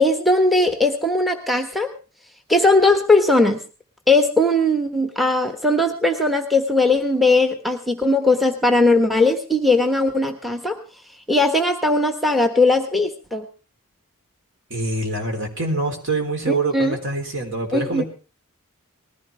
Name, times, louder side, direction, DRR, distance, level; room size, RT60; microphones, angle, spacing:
voice 1, 0.0-1.9 2.5-3.6 4.1-10.8 11.3-13.4 16.5-17.0 17.7-18.0, left 2 dB, ahead, 5 dB, 1.2 m, -18 dB
voice 2, 14.7-18.1, right 2 dB, 60° right, 4 dB, 3.7 m, -25 dB
20.5 x 15.0 x 3.4 m, 0.34 s
head